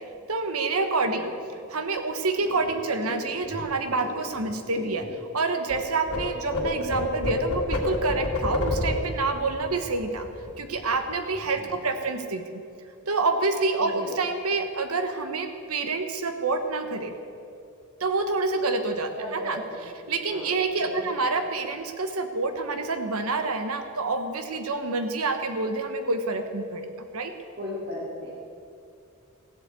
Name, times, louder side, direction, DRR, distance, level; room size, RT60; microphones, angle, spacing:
voice 1, 0.3-1.3 1.7-5.0 5.3-10.3 10.6-12.4 13.1-17.1 18.0-19.6 20.1-26.9 27.1-27.3, right 3 dB, 75° right, 7 dB, 1.2 m, -27 dB
voice 2, 1.0-1.4 11.6-11.7 13.8-14.1 19.2-19.8 20.0-20.5 20.8-21.1 27.6-28.4, equal, 50° right, -7 dB, 2.6 m, -36 dB
sound 1, 2.4-5.8 6.1-11.0 11.3-11.6 11.8-12.4, left 1 dB, 75° left, 2.0 m, -31 dB
15.0 x 8.0 x 8.2 m, 2.4 s
head